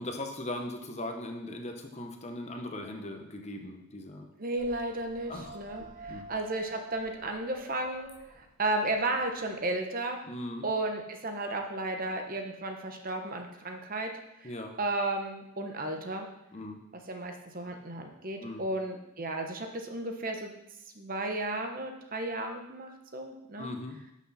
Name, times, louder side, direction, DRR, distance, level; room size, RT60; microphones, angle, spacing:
voice 1, 0.0-4.3 5.3-6.3 10.3-10.6 14.4-14.7 16.5-16.8 18.4-18.6 23.6-24.0, left 1 dB, 30° left, 4 dB, 0.9 m, -39 dB
voice 2, 4.4-10.2 10.6-14.1 14.4-14.5 14.8-16.3 17.1-20.5 20.9-23.7, right 2 dB, 40° right, 4 dB, 1.0 m, -34 dB
sound 1, 4.6-9.5, right 2 dB, 90° right, 2.5 m, -49 dB
11.5 x 6.2 x 4.2 m, 0.86 s
head